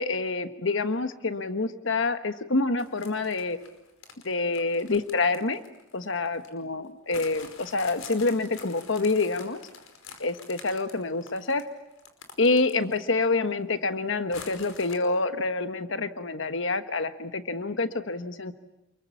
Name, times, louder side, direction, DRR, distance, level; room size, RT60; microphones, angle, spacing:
voice 1, 0.0-3.6 4.2-5.6 5.9-9.6 10.2-11.7 12.4-18.5, left 3 dB, 65° left, 9 dB, 1.3 m, -27 dB
sound 1, 2.8-6.5 7.1-13.2 13.5-13.6 14.3-15.0, left 5 dB, 90° left, 5.0 m, -47 dB
28.5 x 22.5 x 8.6 m, 0.89 s
head